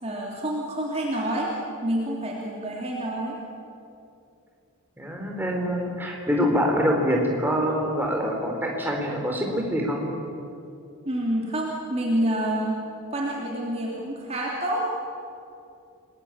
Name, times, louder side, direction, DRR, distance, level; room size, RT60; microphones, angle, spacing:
voice 1, 0.0-1.5 1.8-3.4 11.0-12.7 13.1-14.9, right 1 dB, 30° right, -2 dB, 3.0 m, -27 dB
voice 2, 5.0-10.1, equal, 10° right, 0 dB, 4.0 m, -25 dB
29.5 x 20.5 x 8.9 m, 2.6 s
head